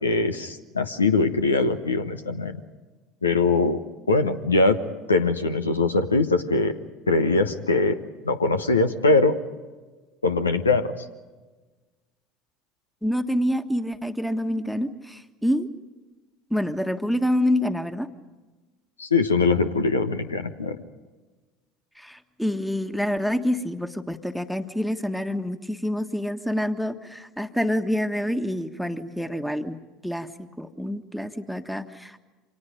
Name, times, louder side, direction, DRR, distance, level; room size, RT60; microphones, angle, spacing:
voice 1, 0.0-2.5 3.2-4.8 5.1-6.7 7.1-8.0 8.2-9.4 10.2-10.9 19.0-20.8, left 3 dB, 80° left, 8 dB, 1.2 m, -22 dB
voice 2, 13.0-15.8 16.5-18.1 22.0-30.3 30.6-32.2, equal, ahead, 8 dB, 1.5 m, -27 dB
29.0 x 26.0 x 5.2 m, 1.2 s
figure-of-eight pair, 70°, 0 cm